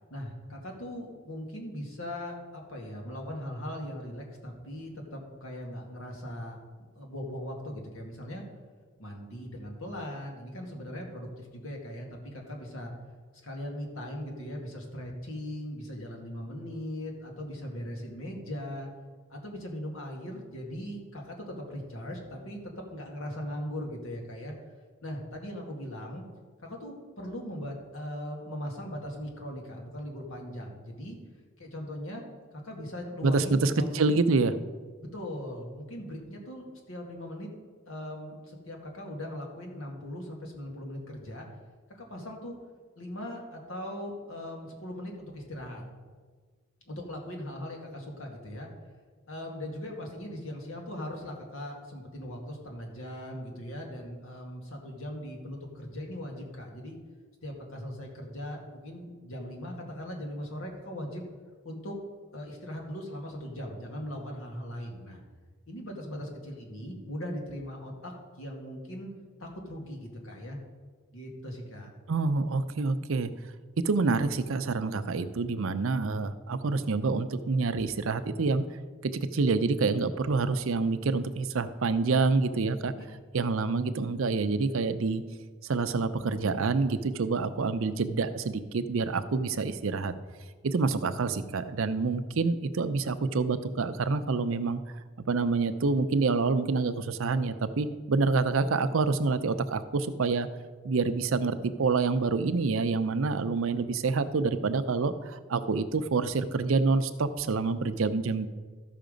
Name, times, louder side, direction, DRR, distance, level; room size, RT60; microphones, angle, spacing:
voice 1, 0.1-6.6 7.0-8.4 9.0-12.9 13.4-18.9 19.3-22.6 22.9-24.5 25.0-26.2 26.6-31.2 31.6-32.2 32.6-34.2 35.1-37.5 37.9-41.5 41.9-42.5 43.0-45.8 46.9-48.7 49.3-57.0 57.4-61.2 61.6-62.0 62.3-65.2 65.7-69.1 69.4-70.6 71.1-71.9 82.9-83.0, equal, 85° left, 0 dB, 2.1 m, -39 dB
voice 2, 33.2-34.5 72.1-73.3 73.8-78.6 79.1-82.9 83.3-85.2 85.6-90.1 90.6-94.8 95.3-100.5 100.8-108.5, right 4 dB, 75° right, 11 dB, 0.6 m, -27 dB
13.5 x 5.8 x 5.1 m, 1.5 s
head